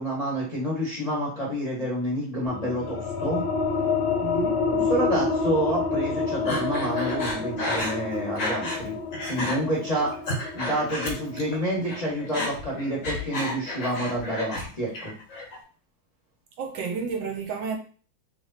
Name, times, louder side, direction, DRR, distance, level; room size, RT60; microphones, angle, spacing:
voice 1, 0.0-3.4 4.7-9.0 9.3-10.1 10.5-15.1, right 1 dB, 25° left, 0.9 m, -28 dB
sound 1, 2.5-13.7, left 4 dB, 80° left, 1.5 m, -29 dB
voice 2, 4.2-4.6 16.6-17.8, right 5 dB, 75° right, 1.3 m, -31 dB
Breathing, 6.5-8.8 9.1-9.6 10.0-11.6 11.8-14.7 14.9-15.6, left 2 dB, 50° left, 1.2 m, -31 dB
3.3 x 3.1 x 3.9 m
omnidirectional pair, 2.2 m